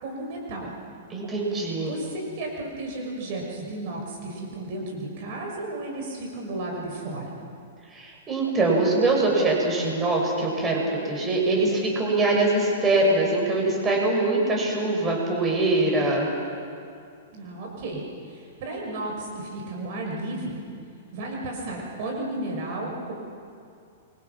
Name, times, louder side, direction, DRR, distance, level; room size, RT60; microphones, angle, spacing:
voice 1, 0.0-0.7 1.8-7.3 17.3-18.0 18.2-20.6 21.1-23.1, right 2 dB, 55° right, 0 dB, 6.1 m, -33 dB
voice 2, 1.1-1.9 7.9-16.3, right 2 dB, 20° right, -1 dB, 7.4 m, -23 dB
28.0 x 25.0 x 6.1 m, 2.4 s
hypercardioid pair, 110°, 0 cm